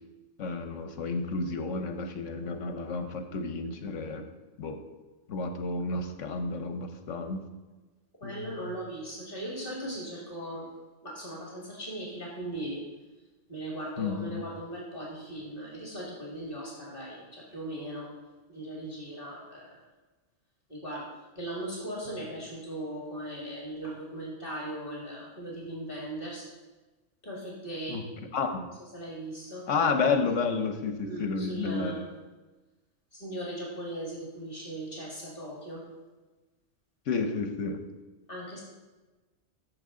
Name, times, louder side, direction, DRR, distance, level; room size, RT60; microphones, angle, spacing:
voice 1, 0.4-4.2 4.6-4.8 5.3-7.4 8.2-8.7 14.0-14.4 27.9-28.1 28.3-28.6 29.7-31.9 37.1-37.8, left 4 dB, 75° left, 7 dB, 1.3 m, -31 dB
voice 2, 8.2-10.7 11.0-12.8 13.5-18.1 18.5-19.8 20.7-26.5 27.2-28.0 28.6-29.7 31.0-32.1 33.1-35.9 37.2-37.4 38.3-38.6, right 1 dB, 45° left, -4 dB, 2.2 m, -38 dB
14.0 x 6.8 x 3.8 m, 1.2 s
omnidirectional pair, 1.3 m